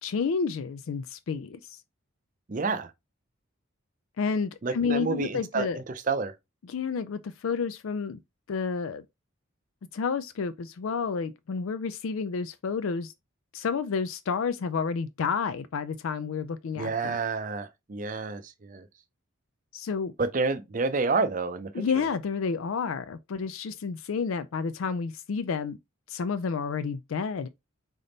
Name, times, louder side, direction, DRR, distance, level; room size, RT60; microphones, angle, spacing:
voice 1, 0.0-1.8 4.2-5.8 6.7-8.2 8.5-9.0 9.9-13.1 13.5-17.2 19.7-20.1 21.7-25.8 26.1-27.5, left 5 dB, 75° left, 0.4 m, -30 dB
voice 2, 2.5-2.9 4.6-6.3 16.8-18.9 20.2-22.0, right 4 dB, 35° right, 0.5 m, -29 dB
3.9 x 3.5 x 3.9 m
head